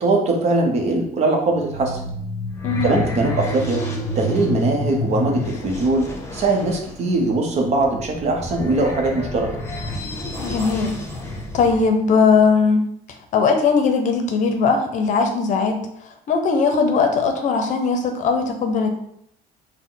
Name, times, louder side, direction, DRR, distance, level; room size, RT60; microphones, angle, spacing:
voice 1, 0.0-2.1 2.8-3.8 4.1-9.5, right 2 dB, 45° right, 2 dB, 0.9 m, -21 dB
sound 1, 1.4-11.9, left 2 dB, 15° left, 0.9 m, -29 dB
voice 2, 10.4-11.0 11.5-12.9 13.3-15.8 16.3-18.9, left 5 dB, 55° left, 5 dB, 0.6 m, -19 dB
4.3 x 2.2 x 3.8 m, 0.72 s
cardioid pair, 120°, 15 cm